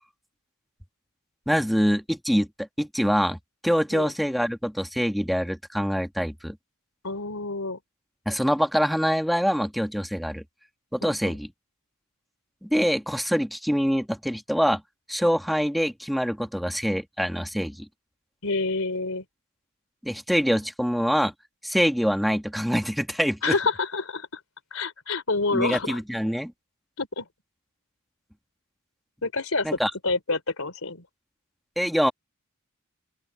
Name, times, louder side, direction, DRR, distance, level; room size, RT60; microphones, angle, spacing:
voice 1, 1.5-3.4 3.6-6.6 8.3-10.4 10.9-11.5 12.6-14.8 15.1-17.9 20.0-21.3 21.6-23.5 25.5-26.5 29.6-29.9 31.8-32.1, equal, ahead, 1.9 m, -25 dB
voice 2, 7.0-7.8 11.0-11.1 18.4-19.2 23.4-24.3 24.7-26.0 27.0-27.3 29.2-31.0, left 3 dB, 85° left, 3.6 m, -28 dB
open air
head